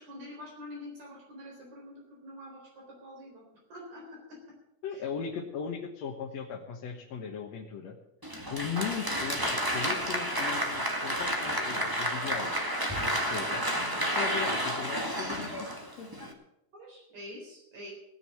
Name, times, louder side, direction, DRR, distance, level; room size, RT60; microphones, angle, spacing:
voice 1, 0.0-3.5 3.7-4.6 4.9-5.0 16.7-17.9, left 1 dB, 60° right, -2 dB, 5.3 m, -46 dB
voice 2, 4.8-8.0 8.5-12.6 13.0-13.6 14.0-15.6 16.0-16.1, left 7 dB, 60° left, 0 dB, 2.2 m, -38 dB
Applause, 8.2-16.3, equal, 15° right, 0.9 m, -31 dB
17.5 x 6.9 x 8.5 m, 0.83 s
omnidirectional pair, 3.7 m